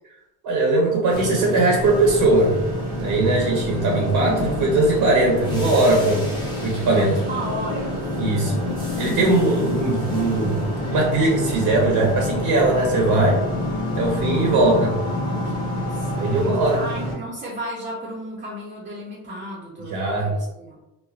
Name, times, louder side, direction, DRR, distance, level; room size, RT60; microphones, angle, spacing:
voice 1, 0.4-2.6 3.0-6.2 6.6-7.2 8.2-8.6 9.0-13.4 14.0-14.9 16.2-16.8 19.9-20.3, right 2 dB, 55° right, -1 dB, 0.7 m, -20 dB
sound 1, 1.1-17.2, equal, 10° left, 0.8 m, -28 dB
sound 2, 3.7-16.4, left 6 dB, 60° left, 1.1 m, -33 dB
voice 2, 7.1-8.1 8.5-9.2 14.6-20.8, right 1 dB, 20° right, -5 dB, 0.5 m, -35 dB
3.1 x 2.0 x 2.3 m, 0.98 s
cardioid pair, 110°, 45 cm